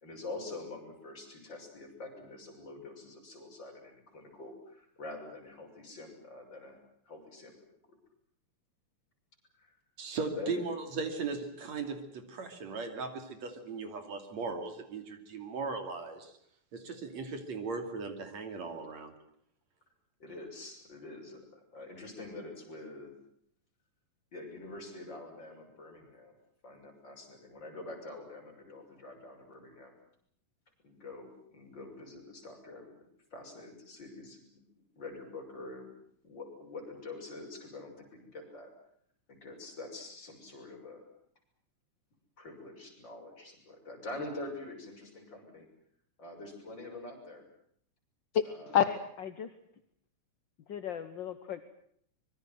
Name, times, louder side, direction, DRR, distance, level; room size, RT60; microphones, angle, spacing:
voice 1, 0.0-3.7 4.1-4.5 5.0-6.7 7.1-7.5 10.4-10.6 20.2-21.4 21.7-23.1 24.3-26.3 26.6-29.9 30.8-32.9 33.3-34.4 35.0-35.9 36.2-37.9 38.3-38.7 39.4-41.0 42.4-45.6 46.2-47.4 48.5-48.7, left 2 dB, 35° left, 1 dB, 7.0 m, -45 dB
voice 2, 10.0-16.3 16.7-19.1, right 4 dB, 65° right, 7 dB, 3.9 m, -38 dB
voice 3, 48.7-49.5 50.7-51.6, left 9 dB, 60° left, 10 dB, 1.3 m, -31 dB
25.0 x 22.5 x 7.8 m, 0.67 s
omnidirectional pair, 3.5 m